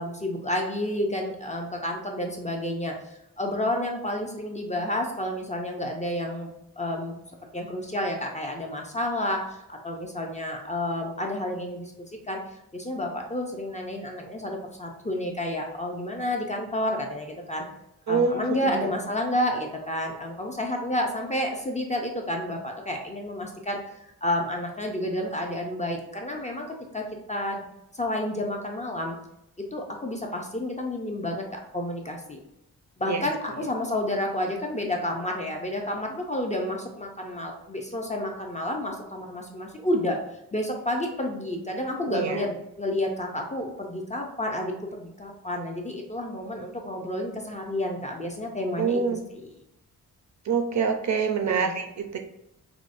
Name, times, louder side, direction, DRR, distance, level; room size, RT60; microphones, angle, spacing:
voice 1, 0.0-2.9 3.4-7.2 7.5-12.4 12.7-17.6 18.1-26.7 26.9-27.6 27.9-29.2 29.6-32.4 33.0-40.2 40.5-49.0 49.3-49.5 51.4-51.7, left 1 dB, 20° left, 1 dB, 0.4 m, -30 dB
voice 2, 18.1-18.8 33.0-33.2 42.1-42.4 48.8-49.2 50.5-52.2, right 5 dB, 50° right, 5 dB, 0.4 m, -26 dB
4.8 x 2.0 x 2.4 m, 0.84 s
wide cardioid pair, 155°, 37 cm